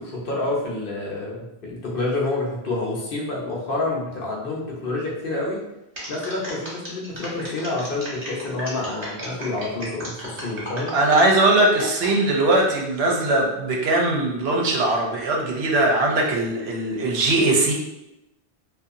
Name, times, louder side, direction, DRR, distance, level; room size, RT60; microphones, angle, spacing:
voice 1, 0.0-5.6 6.1-10.9, left 2 dB, 60° left, -3 dB, 0.8 m, -28 dB
sound 1, 5.9-12.1 12.6-13.0, equal, 40° right, 1.0 m, -35 dB
voice 2, 10.9-17.7, right 2 dB, 70° right, -1 dB, 0.8 m, -20 dB
2.7 x 2.3 x 2.5 m, 0.92 s
omnidirectional pair, 1.1 m